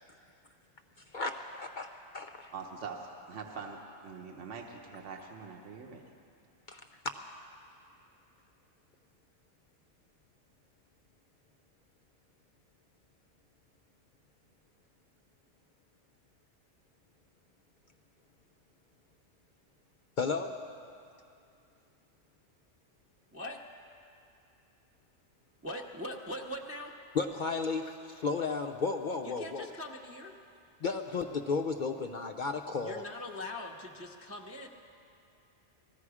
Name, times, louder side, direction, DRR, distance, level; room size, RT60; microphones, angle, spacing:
voice 1, 1.1-2.5 6.7-6.8 20.2-20.5 27.1-29.7 30.8-33.0, left 4 dB, 55° left, 5 dB, 0.5 m, -33 dB
voice 2, 2.5-6.0, right 5 dB, 70° right, 1 dB, 1.2 m, -44 dB
voice 3, 25.6-26.9 29.2-30.4 32.8-34.7, left 1 dB, 15° right, 0 dB, 0.5 m, -41 dB
19.5 x 15.0 x 4.8 m, 2.6 s
omnidirectional pair, 1.3 m